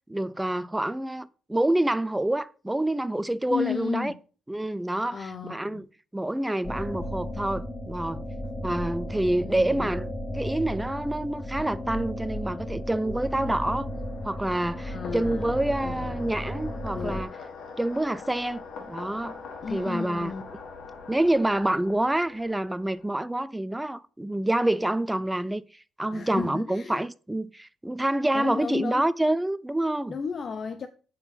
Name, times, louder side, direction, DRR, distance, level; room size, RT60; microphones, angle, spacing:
voice 1, 0.1-4.1 4.5-5.9 6.1-8.2 8.6-13.9 14.2-17.3 17.8-18.6 18.9-19.4 19.7-20.3 21.1-30.2, right 1 dB, 10° right, 0.4 m, -27 dB
voice 2, 3.5-4.2 5.1-5.8 9.3-9.9 14.8-15.6 15.8-16.5 16.9-17.2 19.6-20.4 26.1-27.0 28.3-29.1 30.1-30.9, left 6 dB, 50° left, 0.5 m, -34 dB
sound 1, 6.6-17.2, equal, 20° left, 2.3 m, -34 dB
sound 2, 12.7-23.3, left 4 dB, 75° left, 1.5 m, -44 dB
7.4 x 4.4 x 5.4 m
cardioid pair, 90°, 0 cm